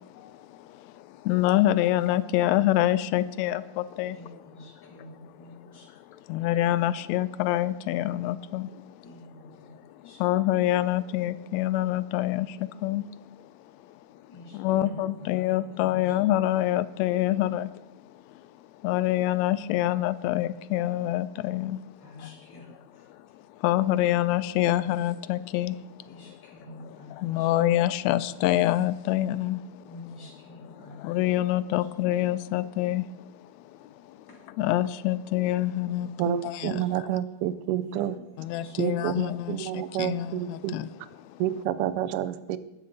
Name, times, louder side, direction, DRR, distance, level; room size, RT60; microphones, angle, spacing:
voice 1, 1.3-4.2 6.3-8.7 10.2-12.5 12.8-13.0 14.5-17.7 18.8-21.8 23.6-25.7 27.2-29.6 31.0-33.0 34.6-36.8 38.4-40.9, left 14 dB, 80° left, 1.8 m, -26 dB
voice 2, 4.1-6.2 9.0-9.8 10.0-10.2 14.3-16.1 22.0-23.1 26.0-27.5 29.8-31.0 34.3-34.4 36.8-36.9 37.8-38.8 39.1-39.2, left 2 dB, 5° left, 3.0 m, -48 dB
voice 3, 36.2-38.2 38.8-40.8 41.4-42.6, right 11 dB, 80° right, 1.3 m, -29 dB
20.5 x 9.3 x 4.1 m
omnidirectional pair, 3.4 m